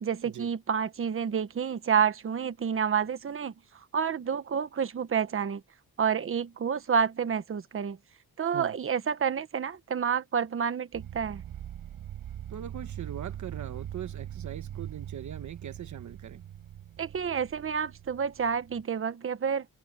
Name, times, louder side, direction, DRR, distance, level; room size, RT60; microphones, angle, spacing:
voice 1, 0.0-3.5 3.9-5.6 6.0-8.0 8.4-11.4 17.0-19.7, right 7 dB, 40° right, 1.3 m, -29 dB
sound 1, 10.9-18.8, right 11 dB, 80° right, 7.4 m, -42 dB
voice 2, 12.5-16.4, right 9 dB, 55° right, 1.2 m, -40 dB
cardioid pair, 120°, 34 cm